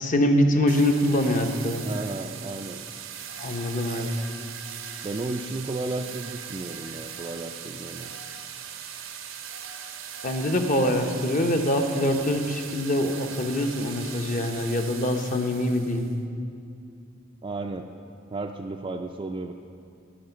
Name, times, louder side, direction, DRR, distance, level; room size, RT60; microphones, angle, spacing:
voice 1, 0.0-1.8 3.4-4.1 10.2-16.1, left 1 dB, 40° left, 5 dB, 0.8 m, -24 dB
sound 1, 0.7-16.1, right 8 dB, 80° right, 0.7 m, -39 dB
voice 2, 1.8-2.8 5.0-8.1 17.4-17.9 18.3-19.5, right 2 dB, 25° right, 3 dB, 0.3 m, -33 dB
10.5 x 5.2 x 8.0 m, 2.5 s
head